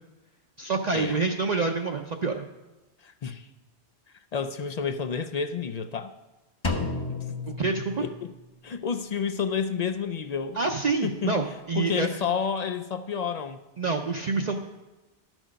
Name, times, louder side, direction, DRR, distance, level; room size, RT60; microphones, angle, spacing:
voice 1, 0.6-2.4 7.5-8.1 10.6-12.1 13.8-14.6, right 4 dB, 45° right, 2 dB, 0.6 m, -27 dB
voice 2, 3.0-3.5 4.3-6.1 7.1-7.2 8.0-8.3 8.6-10.6 11.0-11.4 11.7-13.6, left 6 dB, 55° left, 9 dB, 0.4 m, -30 dB
Drum, 6.6-8.6, left 3 dB, 30° left, 0.8 m, -32 dB
12.0 x 6.3 x 5.1 m, 1.1 s
omnidirectional pair, 1.1 m